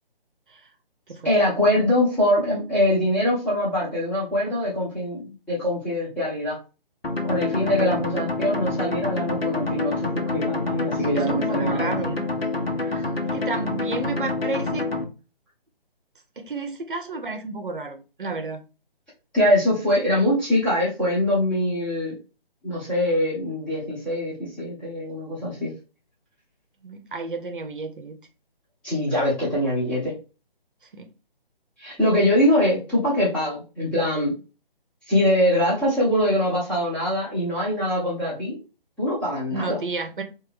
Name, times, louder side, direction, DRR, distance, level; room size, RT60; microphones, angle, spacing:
voice 1, 1.2-6.6 7.2-12.0 12.8-13.1 19.3-22.1 22.6-25.7 28.8-30.1 31.8-34.3 35.1-38.6 39.0-39.8, left 1 dB, 5° left, 0.9 m, -23 dB
sound 1, 7.0-15.0, left 2 dB, 90° left, 1.0 m, -27 dB
voice 2, 11.1-12.3 13.2-14.9 16.4-18.6 26.8-28.2 30.9-31.1 39.5-40.2, right 3 dB, 60° right, 0.8 m, -32 dB
3.7 x 2.6 x 3.4 m
figure-of-eight pair, 145°, 29 cm